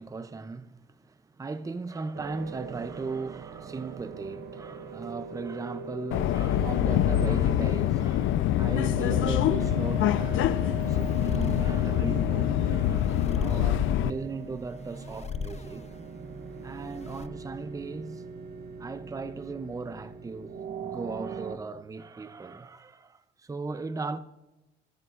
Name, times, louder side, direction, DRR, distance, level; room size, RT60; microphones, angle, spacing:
voice 1, 0.0-10.6 10.9-15.9 16.6-18.2 18.8-20.6 20.8-24.2, right 4 dB, 15° right, 0.6 m, -37 dB
sound 1, 2.1-21.6, right 5 dB, 55° right, 1.0 m, -41 dB
Subway metro underground, 6.1-14.1, left 11 dB, 80° left, 0.4 m, -25 dB
sound 2, 10.7-17.3, left 5 dB, 35° left, 0.6 m, -41 dB
14.0 x 12.5 x 2.5 m
cardioid pair, 90°, 20 cm